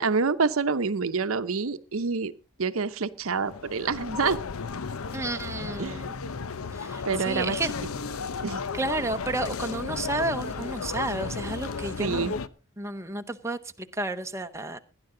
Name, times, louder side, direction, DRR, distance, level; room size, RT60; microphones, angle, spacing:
voice 1, 0.0-2.3 2.6-4.4 5.8-6.0 7.0-7.6 8.4-8.6 12.0-12.3, right 4 dB, 80° right, 0.8 m, -27 dB
sound 1, 3.3-12.5, left 4 dB, 85° left, 0.7 m, -34 dB
voice 2, 5.1-6.1 6.7-7.7 8.7-12.4 12.8-14.8, right 2 dB, 15° right, 0.7 m, -31 dB
18.0 x 10.5 x 3.8 m
head